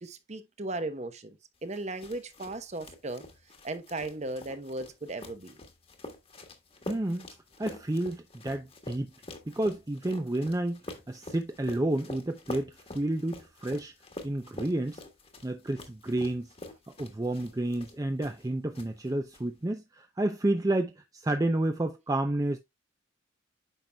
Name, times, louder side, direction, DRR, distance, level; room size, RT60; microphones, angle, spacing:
voice 1, 0.0-1.4 1.6-3.2 3.6-5.6, right 2 dB, 35° right, 0.8 m, -36 dB
sound 1, 1.7-18.5 18.7-19.4, left 2 dB, 30° left, 1.3 m, -46 dB
voice 2, 6.9-7.3 7.6-9.1 9.5-13.9 14.2-15.0 15.4-16.5 17.0-22.6, right 1 dB, 20° right, 0.5 m, -30 dB
9.0 x 5.9 x 2.3 m
head